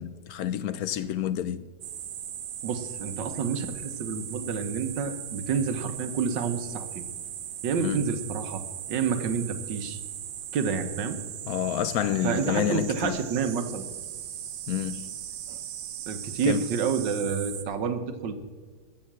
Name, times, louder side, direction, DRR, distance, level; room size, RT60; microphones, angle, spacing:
voice 1, 0.0-1.6 7.8-8.0 11.5-13.2 14.7-15.1 16.5-16.6, left 10 dB, 70° left, 0.9 m, -29 dB
sound 1, 1.8-17.6, right 10 dB, 65° right, 1.2 m, -38 dB
voice 2, 2.6-7.0 7.6-10.0 10.5-11.2 12.2-13.8 15.5-15.6 16.1-18.3, right 6 dB, 80° right, 1.7 m, -29 dB
14.5 x 6.5 x 7.4 m
omnidirectional pair, 1.9 m